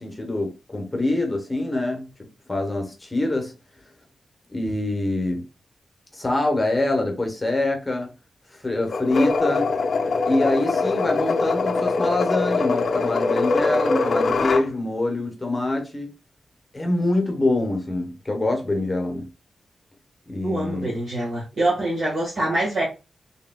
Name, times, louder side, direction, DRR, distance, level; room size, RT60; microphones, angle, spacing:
voice 1, 0.0-3.5 4.5-5.4 6.1-8.1 8.6-9.7 10.2-16.1 16.7-19.2 20.3-20.9, left 2 dB, 15° left, 1.0 m, -25 dB
sound 1, 8.9-14.7, left 3 dB, 55° left, 0.4 m, -23 dB
voice 2, 20.4-22.8, right 1 dB, 50° right, 1.6 m, -25 dB
4.7 x 3.6 x 2.2 m
wide cardioid pair, 180°, 0 cm